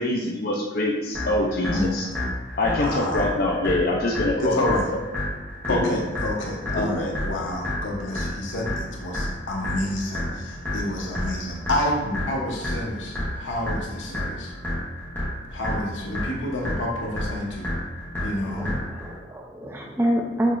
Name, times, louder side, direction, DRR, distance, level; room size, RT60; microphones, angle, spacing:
voice 1, 0.0-2.1 2.6-5.0 5.7-6.0 6.7-7.2, left 2 dB, 50° left, -2 dB, 0.4 m, -25 dB
sound 1, 1.1-19.1, left 1 dB, 10° left, 1.0 m, -31 dB
voice 2, 2.7-3.3 4.4-4.9 5.7-14.5 15.5-17.7 18.2-18.7, left 1 dB, 70° left, -1 dB, 0.8 m, -29 dB
voice 3, 18.4-20.6, right 1 dB, 10° right, 1 dB, 0.4 m, -27 dB
6.1 x 2.8 x 2.5 m, 1.2 s
head